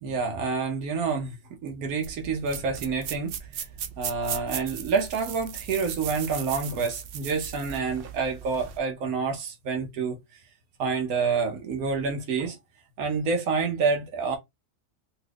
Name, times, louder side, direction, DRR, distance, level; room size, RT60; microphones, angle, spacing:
voice 1, 0.0-1.4 1.6-3.7 4.0-10.4 10.8-12.6 13.0-14.4, right 5 dB, 90° right, 1.2 m, -28 dB
sound 1, 2.0-8.8, right 8 dB, 70° right, 0.5 m, -37 dB
3.0 x 2.3 x 3.3 m
omnidirectional pair, 1.5 m